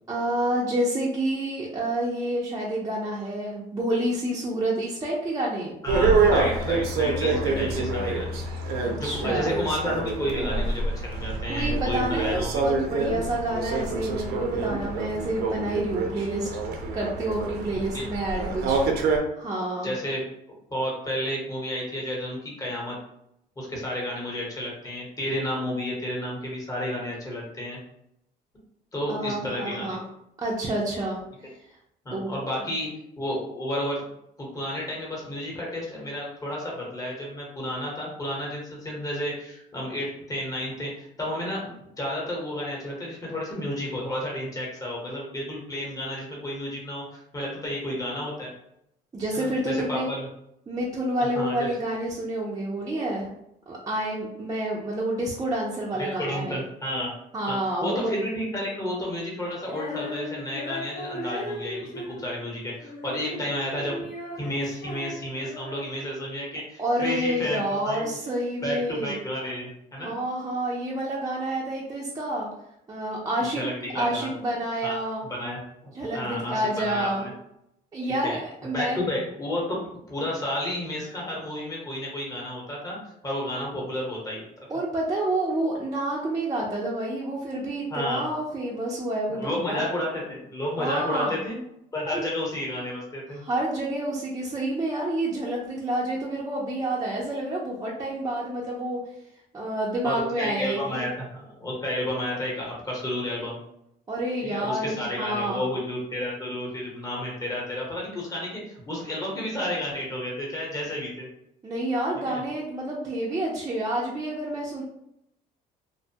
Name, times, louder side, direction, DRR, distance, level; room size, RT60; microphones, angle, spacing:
voice 1, 0.1-5.8 8.8-9.5 11.5-16.5 16.9-18.8 19.4-19.9 29.1-30.0 30.4-31.2 32.1-32.3 49.1-50.1 50.7-53.3 53.7-56.6 57.3-58.1 66.8-69.2 70.0-72.5 72.9-73.6 73.9-75.2 75.9-77.3 77.9-79.0 84.7-89.9 90.8-91.3 92.1-92.2 93.4-99.0 99.5-101.1 104.1-105.7 111.6-114.8, right 1 dB, 20° right, -4 dB, 0.5 m, -28 dB
voice 2, 5.8-8.4 9.0-12.6 17.9-18.0 19.8-20.2 20.7-23.0 23.6-27.8 28.9-30.0 32.0-32.9 33.2-34.0 34.4-48.5 49.3-50.3 51.3-51.7 56.0-57.1 57.5-64.0 64.4-68.1 68.6-70.2 73.4-74.3 74.8-75.0 75.3-77.3 78.2-78.4 78.7-79.8 80.1-83.0 83.2-84.4 87.9-88.3 89.3-91.6 91.9-93.4 100.0-103.6 104.4-111.3 112.1-112.4, left 1 dB, 20° left, -3 dB, 1.0 m, -31 dB
sound 1, 5.9-19.2, right 3 dB, 70° right, 0.5 m, -26 dB
Female singing, 59.6-66.0, left 1 dB, 60° left, 0.7 m, -37 dB
2.6 x 2.2 x 2.7 m, 0.80 s
cardioid pair, 110°, 17 cm